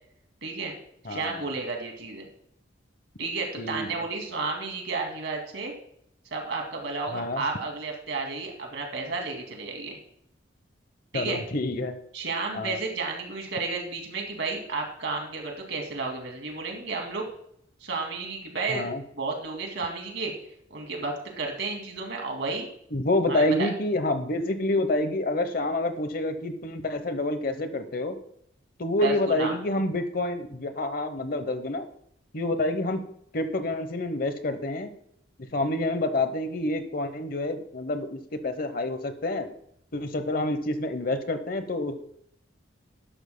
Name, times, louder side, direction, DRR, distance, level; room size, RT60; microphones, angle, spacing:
voice 1, 0.4-0.7 1.1-2.3 3.2-5.7 6.3-10.0 11.1-11.4 12.1-17.3 17.8-18.9 19.1-20.3 20.7-22.7 23.3-23.7 29.0-29.5, right 3 dB, 65° right, 2 dB, 2.4 m, -32 dB
voice 2, 1.0-1.4 3.6-4.0 7.1-7.4 11.1-12.0 12.5-12.8 18.7-19.0 22.9-28.2 28.8-31.9 32.3-33.0 33.3-34.9 35.5-39.5 39.9-42.0, left 2 dB, 50° left, 9 dB, 0.9 m, -28 dB
12.5 x 11.5 x 2.2 m, 0.71 s
head